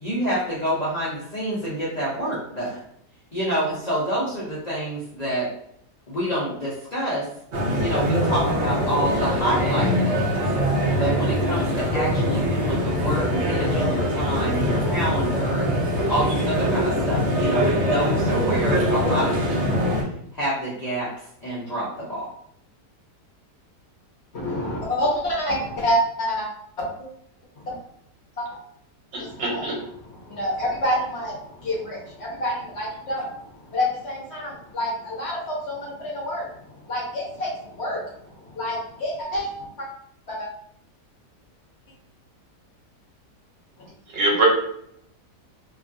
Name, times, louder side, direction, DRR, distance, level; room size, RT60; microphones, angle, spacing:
voice 1, 0.0-2.8 3.3-5.5 6.1-7.2 7.8-10.4 11.0-15.7 16.1-19.9 20.3-21.1 21.4-22.3, right 1 dB, 75° left, -7 dB, 0.3 m, -27 dB
sound 1, 7.5-20.0, equal, 65° right, 0.7 m, -23 dB
voice 2, 24.3-26.5 27.7-27.8 28.4-28.5 29.2-33.3 33.7-36.5 36.9-39.5 39.8-39.9 40.3-40.5 43.8-43.9, equal, 60° left, -5 dB, 0.7 m, -28 dB
voice 3, 29.1-29.7 44.1-44.5, right 2 dB, 85° right, -3 dB, 1.5 m, -23 dB
3.0 x 2.3 x 2.5 m, 0.71 s
omnidirectional pair, 1.8 m